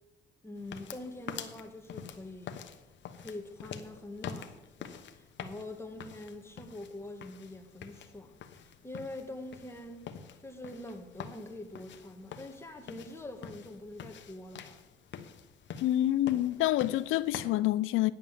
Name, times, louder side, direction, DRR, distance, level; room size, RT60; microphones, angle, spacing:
voice 1, 0.4-2.6 3.2-10.1 10.4-14.8, left 1 dB, 10° left, 1.7 m, -44 dB
sound 1, 0.6-17.4, left 8 dB, 65° left, 1.1 m, -47 dB
voice 2, 15.8-18.1, left 14 dB, 85° left, 0.5 m, -27 dB
10.0 x 7.4 x 7.4 m
cardioid pair, 90°, 20 cm